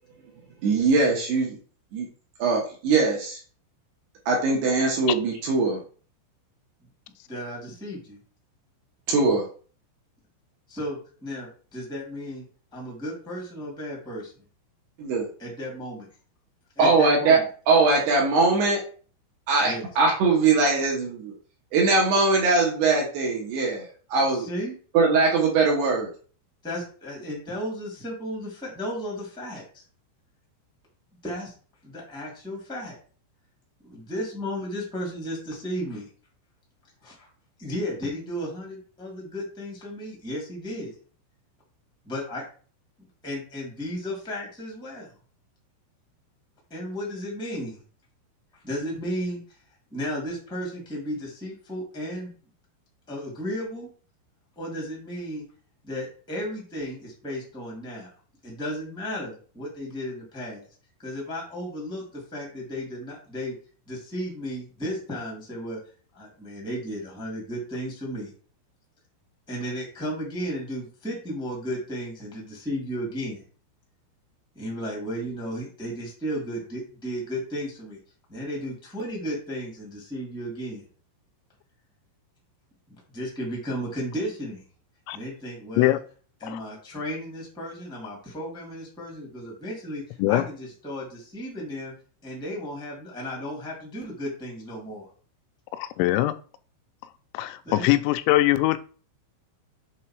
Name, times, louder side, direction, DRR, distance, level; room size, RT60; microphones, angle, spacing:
voice 1, 0.6-1.6 1.9-2.1 2.4-3.4 4.3-5.8 9.1-9.4 15.0-15.3 16.8-17.4 17.7-18.8 19.5-21.3 21.7-24.5 24.9-26.1, right 3 dB, 65° right, -1 dB, 2.9 m, -21 dB
voice 2, 7.3-8.2 10.7-12.4 12.7-14.3 15.4-16.1 16.7-17.4 19.6-19.9 24.3-24.7 26.6-29.7 31.2-31.5 31.8-33.0 33.8-36.0 37.0-37.3 37.6-40.9 42.0-42.4 43.2-45.1 46.7-47.8 48.6-49.4 49.9-52.3 53.1-53.9 54.5-55.4 55.8-58.1 58.4-60.6 61.0-63.5 63.8-65.8 66.1-68.3 69.5-73.4 74.5-78.0 78.3-80.8 82.9-84.6 85.1-86.0 86.4-91.9 92.2-95.1 97.6-97.9, equal, 5° left, -3 dB, 0.9 m, -34 dB
voice 3, 95.8-96.4 97.3-98.8, left 16 dB, 85° left, 10 dB, 3.1 m, -22 dB
7.5 x 3.9 x 4.5 m, 0.40 s
omnidirectional pair, 5.9 m